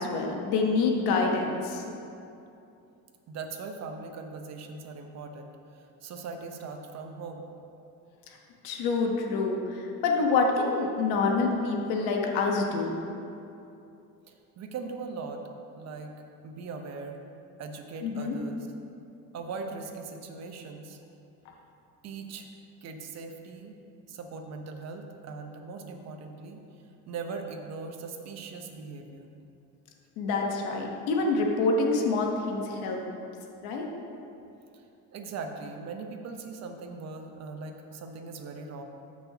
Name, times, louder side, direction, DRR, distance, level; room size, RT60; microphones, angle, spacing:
voice 1, 0.0-1.8 8.6-13.0 18.0-18.4 30.2-33.0 33.6-33.8, left 3 dB, 80° left, 1 dB, 1.2 m, -27 dB
voice 2, 3.3-7.5 14.3-15.4 15.8-16.1 16.4-17.2 17.6-18.7 19.3-21.0 22.0-22.5 22.8-23.7 24.1-26.6 27.1-29.3 34.7-34.8 35.1-38.8, right 4 dB, 45° right, 4 dB, 1.0 m, -40 dB
14.0 x 6.2 x 2.9 m, 2.7 s
cardioid pair, 130°, 36 cm